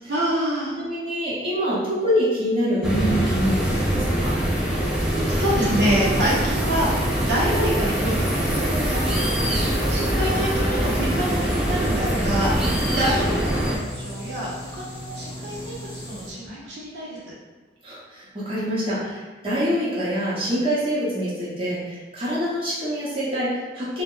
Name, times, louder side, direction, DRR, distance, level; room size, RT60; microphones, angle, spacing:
voice 1, 0.1-0.8 5.0-9.0 9.3-9.5 9.9-13.6 13.9-15.7 16.1-17.3, equal, 75° right, -7 dB, 0.7 m, -27 dB
voice 2, 0.8-4.4 17.8-24.0, equal, 30° right, -10 dB, 0.9 m, -26 dB
sound 1, 2.8-13.8, right 1 dB, 5° right, 0.3 m, -23 dB
sound 2, 11.3-16.3, equal, 20° left, 0.8 m, -37 dB
2.2 x 2.0 x 3.7 m, 1.3 s
head